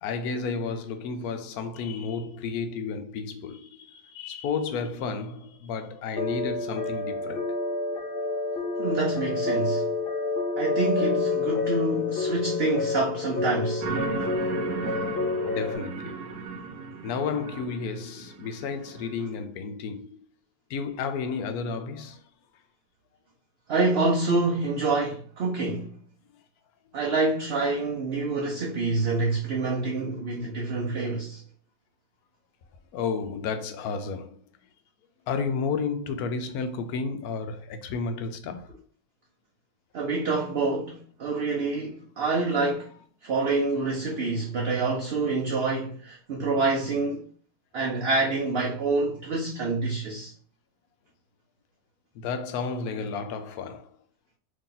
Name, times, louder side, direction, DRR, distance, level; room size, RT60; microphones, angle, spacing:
voice 1, 0.0-7.5 14.9-16.5 17.0-20.3 20.7-22.2 32.9-34.4 35.3-38.7 52.1-53.9, left 5 dB, 75° left, 1.0 m, -32 dB
sound 1, 6.2-15.8, left 3 dB, 50° left, 0.7 m, -28 dB
voice 2, 8.8-9.9 10.6-13.9 23.7-25.9 26.9-31.4 39.9-42.9 43.2-47.3 47.7-50.3, right 3 dB, 55° right, 0.7 m, -27 dB
sound 2, 13.8-19.3, right 5 dB, 90° right, 1.2 m, -35 dB
3.0 x 2.7 x 3.8 m
omnidirectional pair, 1.7 m